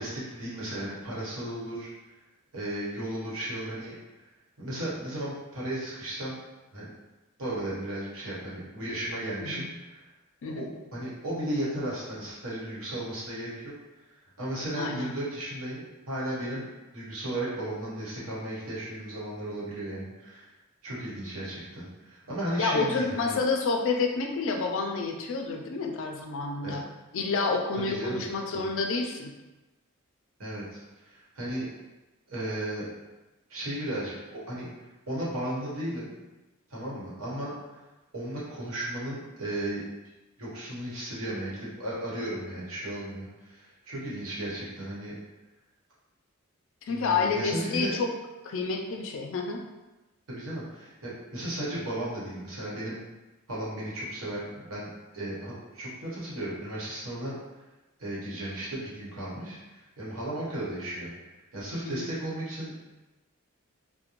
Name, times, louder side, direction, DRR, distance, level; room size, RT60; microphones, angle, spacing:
voice 1, 0.0-1.9 2.5-3.9 4.6-6.4 6.7-6.9 7.4-10.0 10.4-10.6 10.9-13.7 14.4-16.7 16.9-20.5 20.8-23.4 26.6-26.8 27.8-28.3 28.5-28.7 30.4-31.7 32.3-32.9 33.5-34.7 35.1-36.2 36.7-37.5 38.1-39.8 40.4-45.1 46.9-47.9 50.3-53.0 53.5-57.3 58.0-61.1 61.5-62.8, right 1 dB, 80° right, -7 dB, 1.0 m, -35 dB
voice 2, 14.8-15.1 22.6-26.8 27.1-29.3 46.9-48.1 48.4-49.6 61.9-62.1, left 4 dB, 65° left, 2 dB, 0.4 m, -29 dB
2.4 x 2.1 x 2.9 m, 1.1 s
head